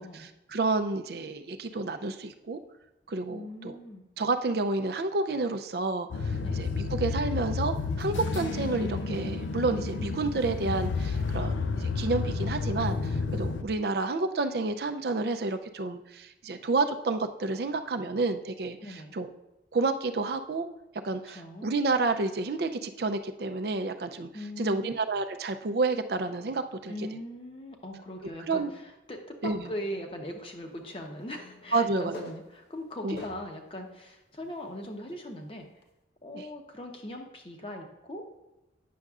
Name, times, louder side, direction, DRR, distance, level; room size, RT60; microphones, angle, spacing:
voice 1, 0.0-2.6 3.1-3.7 4.2-18.8 19.1-19.3 19.7-20.7 21.0-24.3 24.6-26.9 28.5-28.7 29.4-29.7 31.7-32.3 33.0-33.2 36.3-36.5, right 3 dB, 55° right, 7 dB, 0.5 m, -30 dB
voice 2, 3.3-4.1 6.4-6.6 18.8-19.1 21.3-21.7 24.3-24.9 26.9-35.7 36.2-38.3, left 1 dB, 30° left, 3 dB, 0.8 m, -40 dB
sound 1, 6.1-13.6, left 4 dB, 85° left, 0.5 m, -31 dB
sound 2, 30.6-33.7 34.3-34.4 35.8-35.9, left 3 dB, 60° left, 0.8 m, -48 dB
9.3 x 6.5 x 2.4 m, 0.95 s
head